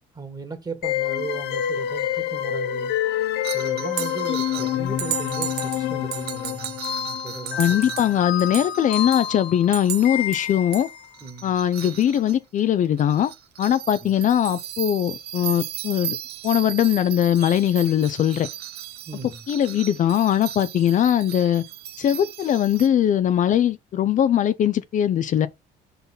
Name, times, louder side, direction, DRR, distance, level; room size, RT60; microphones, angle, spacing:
voice 1, 0.1-2.9 3.4-6.8 7.1-8.0 11.2-11.6 14.0-14.1 19.1-19.5, right 4 dB, 25° right, 1.9 m, -36 dB
sound 1, 0.8-11.0, left 11 dB, 80° left, 0.9 m, -27 dB
sound 2, 3.4-9.4 9.6-12.6 13.0-22.9, right 11 dB, 70° right, 1.0 m, -35 dB
voice 2, 7.6-10.9 11.4-13.3 13.6-16.2 16.4-18.5 19.5-21.6 22.0-25.5, left 10 dB, 50° left, 0.5 m, -21 dB
5.6 x 4.1 x 5.3 m
cardioid pair, 110°, 17 cm